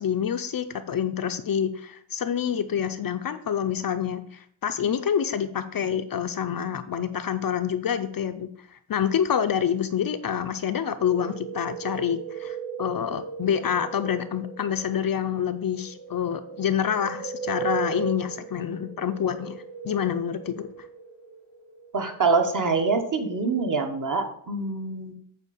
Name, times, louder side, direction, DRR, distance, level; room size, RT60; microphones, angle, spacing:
voice 1, 0.0-20.9, left 8 dB, 45° left, 9 dB, 0.5 m, -27 dB
sound 1, 11.0-23.6, right 7 dB, 60° right, 3.5 m, -38 dB
voice 2, 21.9-25.2, right 4 dB, 40° right, 4 dB, 1.2 m, -25 dB
8.3 x 4.4 x 6.9 m, 0.64 s
wide cardioid pair, 175°, 48 cm